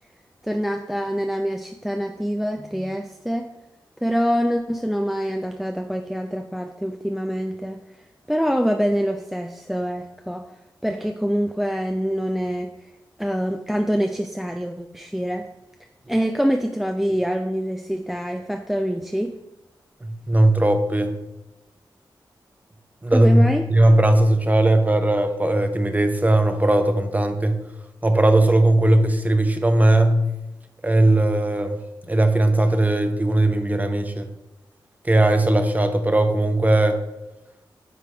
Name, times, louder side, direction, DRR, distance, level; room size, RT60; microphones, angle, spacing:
voice 1, 0.4-3.5 4.0-7.8 8.3-10.5 10.8-12.7 13.2-15.5 16.1-19.4 23.1-23.7, equal, 5° right, 5 dB, 0.4 m, -25 dB
voice 2, 20.0-21.2 23.0-27.6 28.0-30.3 30.8-31.8 32.1-34.3 35.0-37.0, right 1 dB, 20° right, 7 dB, 0.7 m, -18 dB
9.1 x 3.4 x 3.3 m, 0.97 s
cardioid pair, 45°, 8 cm